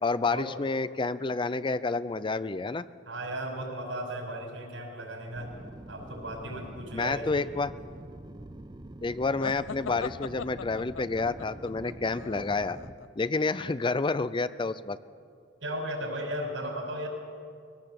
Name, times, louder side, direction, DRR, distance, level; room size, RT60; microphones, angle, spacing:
voice 1, 0.0-2.9 6.9-7.7 9.0-12.8 13.2-15.0, left 3 dB, 25° left, 14 dB, 0.5 m, -29 dB
voice 2, 3.1-5.5 5.9-7.4 15.6-17.1, right 1 dB, 75° right, 1 dB, 5.7 m, -36 dB
sound 1, 5.3-12.9, right 1 dB, 20° right, 0.7 m, -45 dB
sound 2, 9.4-13.1, left 6 dB, 80° left, 0.5 m, -40 dB
22.0 x 17.5 x 7.7 m, 2.3 s
head